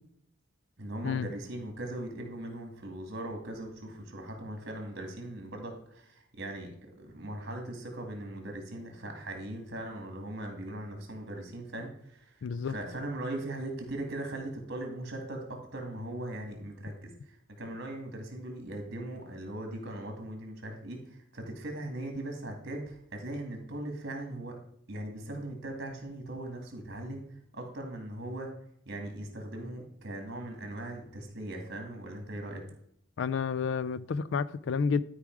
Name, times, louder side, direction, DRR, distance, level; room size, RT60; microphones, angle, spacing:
voice 1, 0.8-24.6 24.9-28.5 28.9-32.6, right 1 dB, 50° right, 2.3 m, -39 dB
voice 2, 12.4-12.7 33.2-35.0, left 5 dB, 60° left, 0.3 m, -30 dB
12.0 x 4.9 x 4.7 m
head